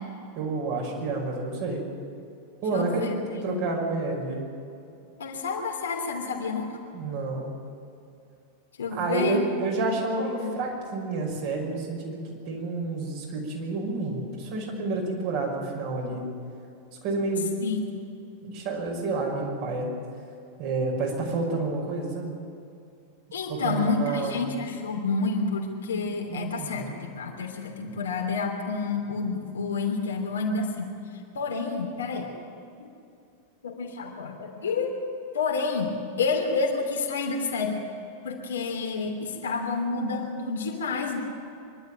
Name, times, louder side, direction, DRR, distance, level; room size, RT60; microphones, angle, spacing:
voice 1, 0.3-1.8 2.6-3.0 3.3-4.5 6.9-7.5 8.9-16.2 17.0-17.5 18.4-19.9 20.6-22.3 23.5-24.4 25.9-26.9, right 3 dB, 45° right, -1 dB, 5.8 m, -29 dB
voice 2, 2.7-3.1 3.4-3.6 5.2-6.8 8.8-9.4 9.8-9.9 10.2-10.5 17.6-18.0 23.3-32.3 32.8-32.9 33.6-35.0 35.3-37.8 38.2-41.2, left 4 dB, 65° left, 1 dB, 3.1 m, -29 dB
25.0 x 12.0 x 9.3 m, 2.5 s
figure-of-eight pair, 90°, 0 cm